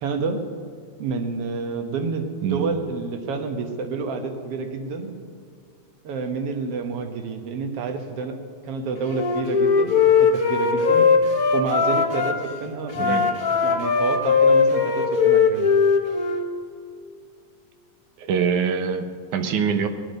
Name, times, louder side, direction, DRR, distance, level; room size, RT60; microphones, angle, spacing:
voice 1, 0.0-0.4 1.0-5.2 6.0-11.1 11.5-13.3 13.6-15.7, right 4 dB, 60° right, 5 dB, 2.0 m, -29 dB
Wind instrument woodwind instrument, 9.0-12.3 12.9-16.5, left 5 dB, 90° left, 0.7 m, -19 dB
voice 2, 18.2-19.1 19.3-19.9, right 6 dB, 80° right, 7 dB, 2.4 m, -23 dB
18.5 x 11.5 x 5.3 m, 2.2 s
omnidirectional pair, 3.4 m